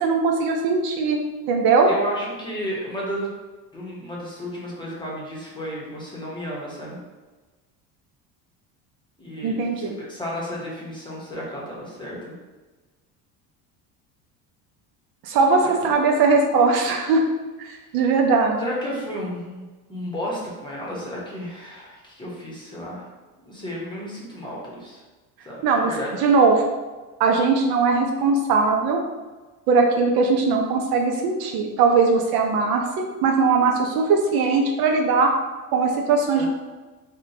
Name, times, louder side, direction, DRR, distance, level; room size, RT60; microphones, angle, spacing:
voice 1, 0.0-1.2 1.5-1.9 9.4-10.0 15.2-17.2 17.9-18.6 25.6-25.9 26.2-26.6 27.2-29.0 29.7-32.8 33.2-35.3 35.7-36.5, right 4 dB, 60° right, 2 dB, 0.5 m, -19 dB
voice 2, 1.8-3.3 3.7-7.0 9.2-12.3 15.6-15.9 18.6-23.1 23.4-25.0 25.4-26.2 36.4-36.5, equal, 10° left, -5 dB, 0.8 m, -33 dB
3.6 x 2.2 x 2.7 m, 1.3 s
cardioid pair, 120°, 42 cm